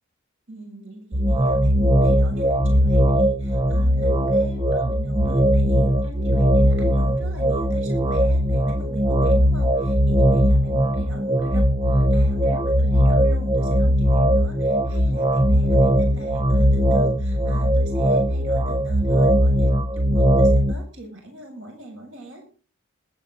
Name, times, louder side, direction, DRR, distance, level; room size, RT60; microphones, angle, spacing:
voice 1, 0.5-22.4, right 1 dB, 55° right, 2 dB, 7.7 m, -41 dB
sound 1, 1.1-20.7, equal, 25° right, 0.8 m, -19 dB
21.0 x 9.1 x 4.0 m, 0.40 s
head